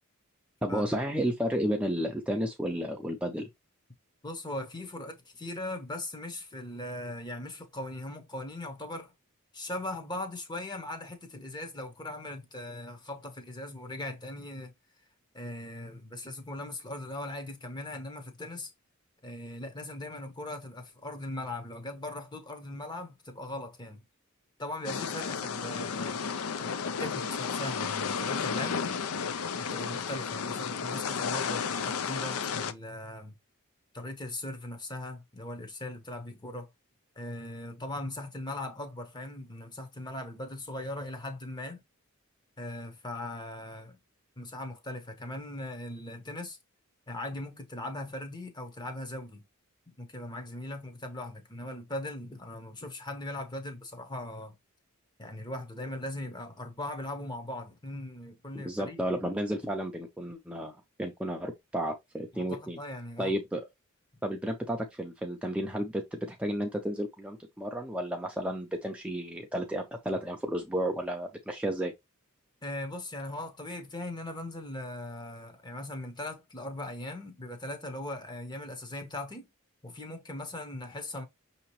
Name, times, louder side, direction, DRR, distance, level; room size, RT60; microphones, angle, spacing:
voice 1, 0.6-3.5 58.6-62.8 63.2-63.7 64.2-71.9, equal, 5° right, 0.4 m, -32 dB
voice 2, 4.2-9.1 9.5-14.7 15.3-18.7 19.2-24.0 24.6-26.2 26.6-28.8 29.6-33.4 33.9-36.7 37.2-41.8 42.6-44.0 44.4-46.6 47.1-49.4 49.9-54.6 55.2-59.0 62.3-63.3 72.6-79.5 79.8-81.2, left 1 dB, 20° left, 0.8 m, -39 dB
sound 1, 24.9-32.7, left 6 dB, 75° left, 0.5 m, -33 dB
6.0 x 2.8 x 3.0 m
head